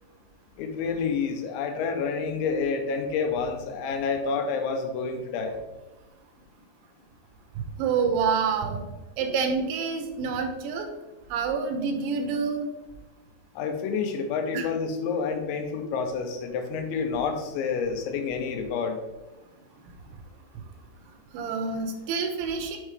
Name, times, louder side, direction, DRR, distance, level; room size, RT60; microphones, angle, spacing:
voice 1, 0.6-5.6 13.6-19.0, left 5 dB, 85° left, 5 dB, 3.2 m, -29 dB
voice 2, 7.6-8.8 9.2-10.9 11.3-12.7 14.5-14.7 21.3-22.8, right 5 dB, 85° right, 5 dB, 3.0 m, -27 dB
7.8 x 5.5 x 3.2 m, 1.1 s
omnidirectional pair, 5.2 m